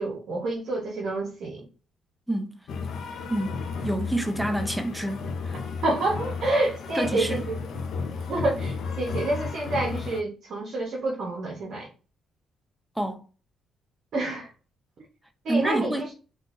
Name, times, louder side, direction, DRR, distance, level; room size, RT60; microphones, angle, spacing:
voice 1, 0.0-1.7 5.8-7.6 8.3-11.9 14.1-14.5 15.4-16.1, right 2 dB, 60° right, 0.9 m, -28 dB
voice 2, 2.3-2.6 3.3-5.6 6.9-7.5 13.0-13.2 15.5-16.1, right 1 dB, ahead, 0.5 m, -28 dB
sound 1, 2.7-10.2, left 4 dB, 70° left, 0.5 m, -33 dB
3.8 x 2.4 x 2.5 m
cardioid pair, 90°, 0 cm